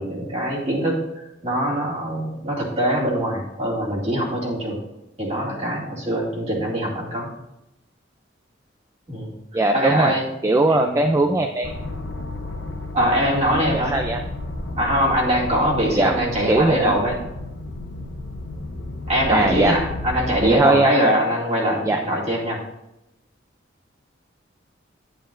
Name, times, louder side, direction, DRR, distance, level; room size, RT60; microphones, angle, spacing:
voice 1, 0.0-4.8 5.2-7.3 9.1-10.3 10.7-10.9 12.9-14.1 14.8-17.2 19.1-22.6, equal, 35° right, -3 dB, 2.2 m, -23 dB
voice 2, 9.5-10.1 10.4-11.7 13.7-14.2 16.0-16.1 16.5-16.9 19.3-19.7 20.4-20.9 21.9-22.0, right 2 dB, 15° right, 5 dB, 0.4 m, -19 dB
sound 1, 11.6-20.6, left 2 dB, 65° left, 0.8 m, -32 dB
10.0 x 9.1 x 2.5 m, 0.90 s
head